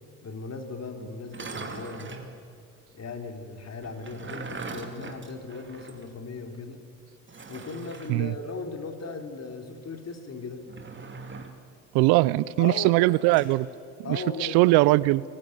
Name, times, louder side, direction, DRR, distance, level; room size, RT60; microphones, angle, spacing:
voice 1, 0.2-2.4 2.9-6.8 7.5-10.6 12.6-13.0 14.0-14.6, left 4 dB, 40° left, 6 dB, 3.6 m, -37 dB
sound 1, 1.2-2.3 3.8-6.1 6.4-6.5 7.3-8.2 10.6-11.6 13.0-13.6, right 4 dB, 30° right, 2.9 m, -41 dB
voice 2, 11.9-13.7 14.1-15.2, right 20 dB, 75° right, 21 dB, 0.7 m, -21 dB
23.0 x 19.0 x 9.8 m, 2.3 s
hypercardioid pair, 70°, 40 cm